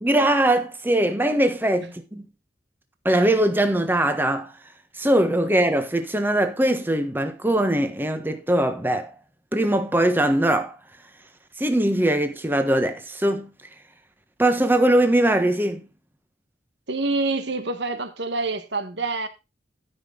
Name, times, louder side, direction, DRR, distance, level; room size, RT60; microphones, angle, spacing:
voice 1, 0.0-2.2 3.0-4.5 5.0-9.1 9.5-10.8 11.6-13.5 14.4-15.8, right 1 dB, 10° right, 1.3 m, -21 dB
voice 2, 16.9-19.3, right 3 dB, 70° right, 1.6 m, -26 dB
13.5 x 6.0 x 3.9 m
head